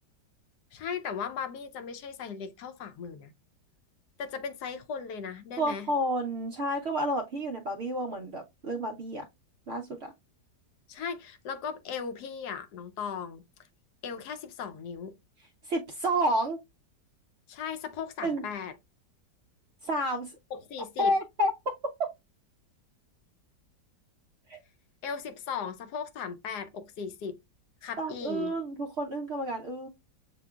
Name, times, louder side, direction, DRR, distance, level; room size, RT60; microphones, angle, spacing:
voice 1, 0.7-3.3 4.2-5.9 10.9-13.4 14.0-15.1 17.5-18.7 20.5-21.1 25.0-27.4 27.8-28.5, left 6 dB, 70° left, 1.1 m, -37 dB
voice 2, 5.6-9.2 9.7-10.1 15.6-16.6 18.2-18.5 19.8-20.3 21.0-21.5 24.5-24.6 28.0-29.9, equal, 80° right, 0.5 m, -30 dB
7.0 x 2.9 x 2.2 m
omnidirectional pair, 1.9 m